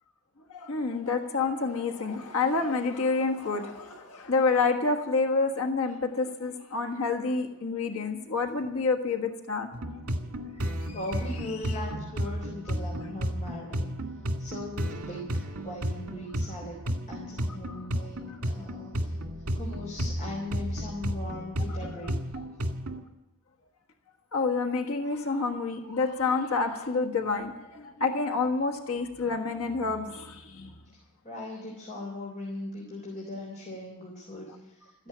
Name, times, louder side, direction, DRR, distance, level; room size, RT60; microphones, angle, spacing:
voice 1, 0.5-9.7 10.6-10.7 24.3-30.7, left 4 dB, 70° left, 3 dB, 1.5 m, -28 dB
sound 1, 9.7-23.0, equal, 80° right, 1.8 m, -33 dB
voice 2, 10.9-14.1 14.4-15.3 15.6-16.8 17.1-19.2 19.5-22.1 31.2-35.1, left 1 dB, 35° left, -2 dB, 3.6 m, -39 dB
14.0 x 10.5 x 8.7 m, 0.94 s
head